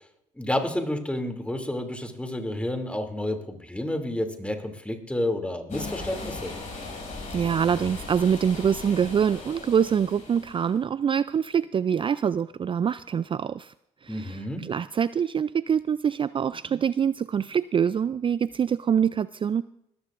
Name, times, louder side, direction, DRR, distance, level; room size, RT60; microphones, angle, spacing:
voice 1, 0.4-6.5 14.1-14.6, left 1 dB, 10° left, 4 dB, 2.7 m, -30 dB
sound 1, 5.7-10.7, left 3 dB, 60° left, 6.4 m, -38 dB
voice 2, 7.3-13.7 14.0-19.6, right 7 dB, 35° right, 16 dB, 0.4 m, -25 dB
19.5 x 14.0 x 2.5 m, 0.77 s
supercardioid pair, 55°, 15 cm